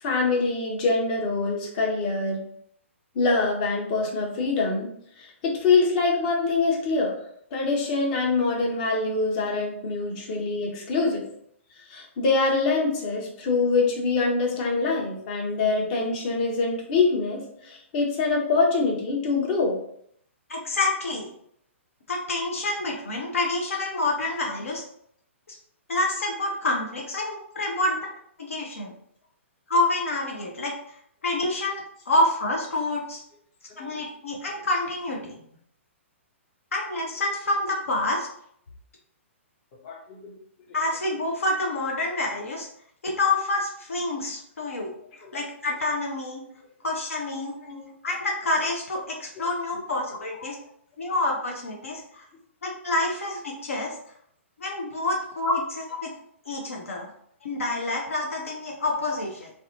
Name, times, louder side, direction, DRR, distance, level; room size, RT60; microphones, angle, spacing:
voice 1, 0.0-2.4 3.1-7.1 7.5-11.2 11.9-19.8 33.8-33.9 39.8-40.3 45.2-45.3 47.6-47.9 55.5-55.6, left 3 dB, 40° left, -1 dB, 0.8 m, -24 dB
voice 2, 20.5-21.3 22.1-24.8 25.9-28.0 28.4-28.9 29.7-30.7 31.2-33.2 33.8-35.4 36.7-38.3 40.7-42.7 43.0-44.9 45.3-46.4 46.8-47.6 48.0-50.6 51.0-52.3 52.6-53.9 54.6-55.6 56.0-56.1 56.5-57.1 57.4-59.5, left 2 dB, 80° left, -1 dB, 0.6 m, -27 dB
2.6 x 2.1 x 2.7 m, 0.68 s
hypercardioid pair, 125°, 7 cm